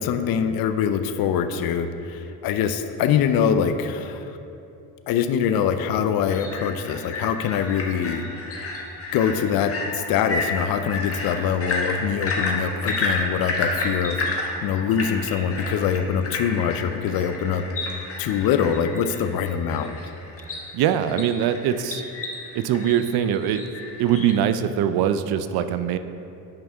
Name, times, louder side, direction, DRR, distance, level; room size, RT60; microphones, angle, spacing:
voice 1, 0.0-4.4 5.1-8.2 9.1-17.6 17.9-19.9, left 7 dB, 65° left, 9 dB, 0.6 m, -24 dB
sound 1, 6.2-24.3, left 2 dB, 35° left, 1.3 m, -31 dB
voice 2, 20.5-22.0 22.5-23.6 24.0-26.0, right 9 dB, 70° right, 11 dB, 0.5 m, -22 dB
8.8 x 5.4 x 3.5 m, 2.8 s
supercardioid pair, 85°, 39 cm